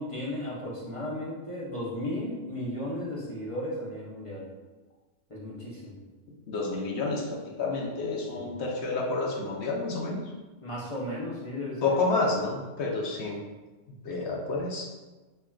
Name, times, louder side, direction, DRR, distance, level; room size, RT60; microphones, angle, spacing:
voice 1, 0.0-4.4 5.3-6.0 8.3-8.5 10.6-12.0, left 1 dB, 30° left, -5 dB, 0.7 m, -35 dB
voice 2, 6.5-10.2 11.8-13.4 14.0-14.9, left 3 dB, 65° left, -1 dB, 0.9 m, -29 dB
5.4 x 2.6 x 2.3 m, 1.2 s
omnidirectional pair, 1.3 m